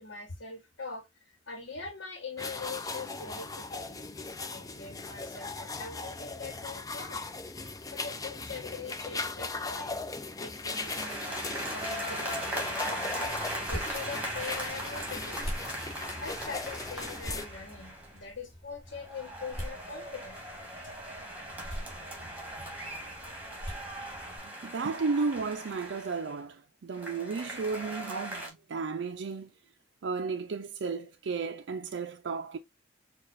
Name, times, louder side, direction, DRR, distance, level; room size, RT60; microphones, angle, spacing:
voice 1, 0.0-4.0 4.5-7.2 7.9-10.0 10.4-15.5 16.2-20.4 20.8-20.9, left 4 dB, 80° left, 1.2 m, -43 dB
sound 1, 2.4-17.5, left 3 dB, 20° left, 0.4 m, -38 dB
sound 2, 10.7-18.2 18.9-26.4 26.9-28.5, right 1 dB, 10° right, 1.2 m, -39 dB
sound 3, 13.3-24.4, equal, 35° left, 3.0 m, -44 dB
voice 2, 24.4-29.5 30.0-32.6, right 4 dB, 75° right, 0.4 m, -33 dB
6.6 x 2.4 x 2.5 m
head